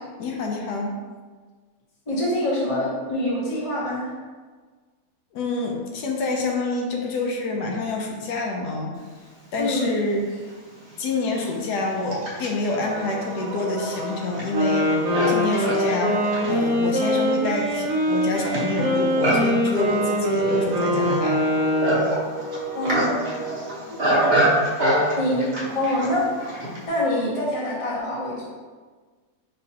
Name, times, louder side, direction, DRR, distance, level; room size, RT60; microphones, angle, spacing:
voice 1, 0.2-0.9 5.3-8.9 9.5-10.2 11.0-14.9 15.3-16.2 16.5-21.4, left 3 dB, 85° left, 0 dB, 1.2 m, -27 dB
voice 2, 2.1-4.1 9.6-9.9 22.7-23.2 24.1-24.3 25.1-25.4 25.7-26.6 26.8-28.4, left 1 dB, 25° left, -6 dB, 0.9 m, -25 dB
Livestock farm animals working animals, 10.1-10.2 11.0-26.9, right 1 dB, 45° right, 1.1 m, -27 dB
Wind instrument woodwind instrument, 14.5-22.3, equal, 65° right, 1.2 m, -23 dB
5.3 x 3.1 x 2.8 m, 1.5 s
omnidirectional pair, 1.7 m